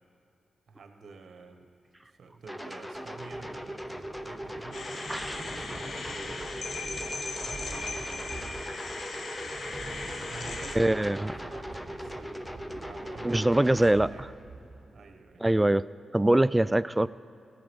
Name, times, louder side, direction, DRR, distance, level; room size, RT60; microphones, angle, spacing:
voice 1, 0.7-1.7 2.0-6.5 7.4-8.5 10.3-12.4 12.7-14.3 14.9-15.4, right 4 dB, 65° right, 5 dB, 1.2 m, -48 dB
sound 1, 2.5-13.9, equal, 5° left, 0.8 m, -40 dB
sound 2, 3.0-15.2, right 2 dB, 35° right, 1.4 m, -46 dB
sound 3, 4.7-10.8, left 3 dB, 65° left, 1.1 m, -38 dB
voice 2, 10.8-11.3 13.2-14.1 15.4-17.1, right 1 dB, 15° right, 17 dB, 0.3 m, -23 dB
16.5 x 8.0 x 5.4 m, 2.6 s
cardioid pair, 55°, 0 cm